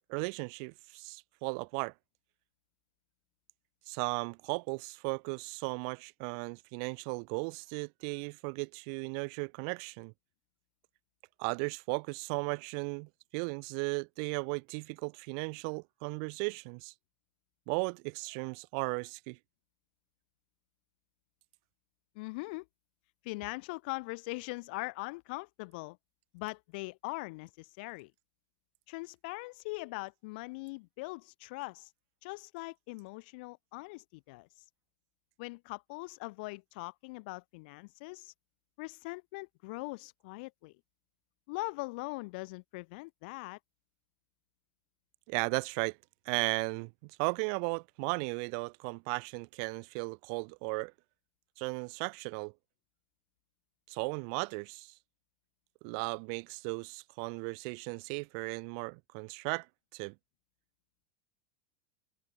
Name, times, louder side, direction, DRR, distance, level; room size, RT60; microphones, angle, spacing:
voice 1, 0.1-1.9 3.9-10.1 11.4-16.9 17.7-19.4 45.3-46.0 46.3-50.9 51.6-52.5 53.9-54.9 55.8-59.7 59.9-60.1, right 40 dB or more, 60° right, 5.6 m, -36 dB
voice 2, 22.2-22.7 23.2-26.0 26.3-28.1 28.9-31.9 32.2-34.5 35.4-38.3 38.8-40.7 41.5-43.6, left 26 dB, 65° left, 4.0 m, -41 dB
supercardioid pair, 135°, 6 cm